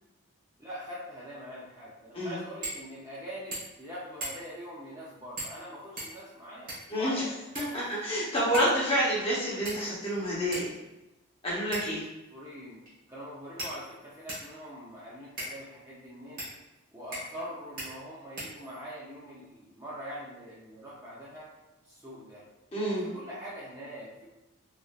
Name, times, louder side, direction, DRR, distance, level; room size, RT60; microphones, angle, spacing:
voice 1, 0.6-7.3 7.6-8.3 12.3-12.8 13.1-16.4 16.9-21.5 21.8-22.4 23.0-24.3, equal, 15° right, -8 dB, 0.5 m, -43 dB
sound 1, 2.6-2.8 3.1-3.2 3.5-3.8 4.2-4.6 5.4-5.6 6.0-7.0 7.5-8.1 8.5-8.8 9.7-10.1 10.5-10.7 11.7-12.1 12.9-13.0 13.6-14.5 15.4-15.6 16.4-16.5 17.1-17.5 17.8-17.9 18.4-18.9, right 1 dB, 40° right, 1.2 m, -39 dB
voice 2, 6.9-7.2 7.6-10.7 11.4-12.0 22.7-23.1, equal, 25° left, -6 dB, 0.8 m, -28 dB
3.2 x 2.5 x 2.3 m, 1.0 s
head